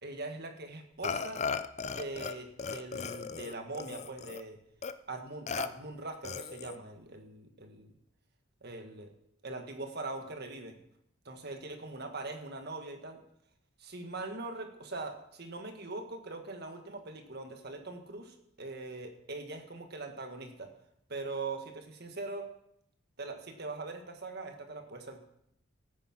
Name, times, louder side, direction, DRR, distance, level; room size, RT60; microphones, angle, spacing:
voice 1, 0.0-1.4 1.8-4.6 5.1-8.0 8.6-9.1 9.4-10.8 11.2-13.2 13.8-20.7 21.1-22.5 23.2-25.2, right 3 dB, 50° right, 5 dB, 1.7 m, -42 dB
Burping eructation, 1.0-2.3 2.6-4.4 4.8-4.9 5.5-5.7 6.2-6.8, left 5 dB, 35° left, 0.6 m, -36 dB
14.0 x 9.5 x 6.0 m, 0.75 s
head